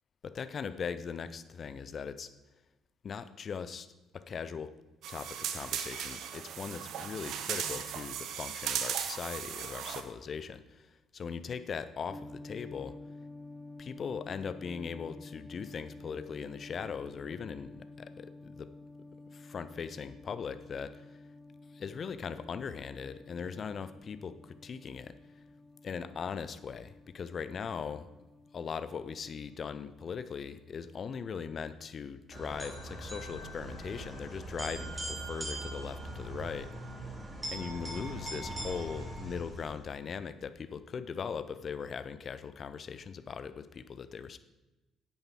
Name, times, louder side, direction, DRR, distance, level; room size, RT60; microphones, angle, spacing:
voice 1, 0.2-2.3 3.0-3.9 4.1-4.7 5.1-13.0 13.8-18.7 19.3-21.1 21.7-25.1 25.8-28.1 28.5-36.7 37.5-44.4, left 6 dB, 45° left, 13 dB, 0.7 m, -40 dB
sound 1, 5.0-10.0, right 9 dB, 65° right, 0.8 m, -37 dB
sound 2, 12.1-31.6, left 2 dB, 15° left, 1.1 m, -51 dB
sound 3, 32.3-39.8, right 1 dB, 20° right, 3.7 m, -41 dB
10.5 x 8.9 x 3.8 m, 1.0 s
hypercardioid pair, 50°, 0 cm